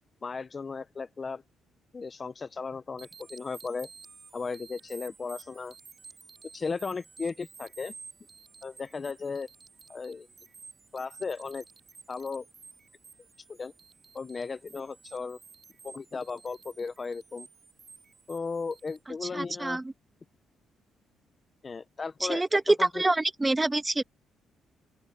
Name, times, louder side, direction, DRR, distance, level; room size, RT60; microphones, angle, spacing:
voice 1, 0.2-1.4 1.9-3.9 4.3-5.7 6.5-7.9 8.6-9.5 9.9-10.3 10.9-11.6 12.1-12.5 13.5-13.7 14.1-15.4 15.8-17.5 18.3-19.8 21.6-22.4 22.8-22.9, left 4 dB, 35° left, 0.7 m, -36 dB
sound 1, 3.0-19.0, right 4 dB, 35° right, 4.1 m, -52 dB
voice 2, 19.2-19.9 22.2-24.0, right 2 dB, 15° right, 1.7 m, -26 dB
open air
cardioid pair, 90°, 0 cm